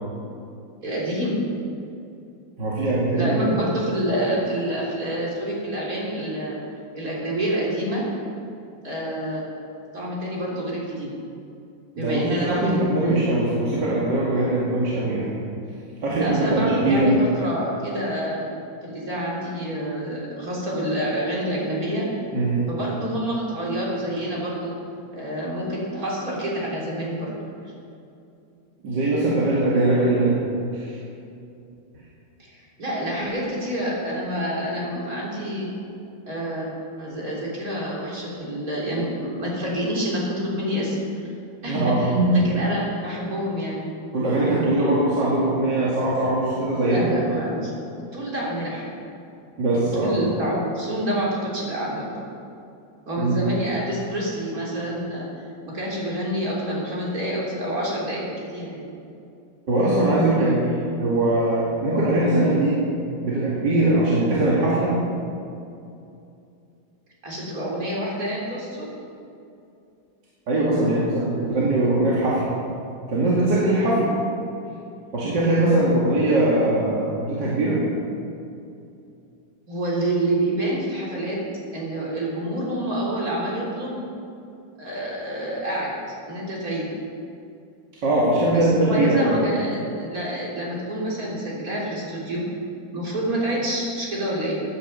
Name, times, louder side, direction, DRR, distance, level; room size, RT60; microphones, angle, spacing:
voice 1, 0.8-1.4 3.2-6.6 6.9-8.1 8.8-9.4 9.9-11.1 12.0-12.8 16.2-18.4 18.8-22.1 22.7-24.8 25.1-27.3 32.4-35.7 36.3-36.7 37.0-41.0 41.6-43.9 46.9-47.7 48.1-49.0 49.9-52.3 53.1-55.3 55.7-58.9 67.2-68.9 79.7-81.4 81.7-84.0 84.8-86.0 86.3-86.9 88.5-92.5 92.9-94.6, right 1 dB, 45° right, -5 dB, 3.9 m, -27 dB
voice 2, 2.6-3.5 12.0-15.3 16.0-17.2 22.3-22.6 28.8-30.4 30.7-31.0 41.6-42.3 44.1-47.3 49.6-50.1 53.2-53.4 59.7-62.8 63.2-64.9 70.5-72.5 73.1-74.1 75.1-77.8 88.0-89.2, right 2 dB, 65° right, -7 dB, 2.9 m, -21 dB
16.5 x 10.5 x 5.5 m, 2.6 s
omnidirectional pair, 2.1 m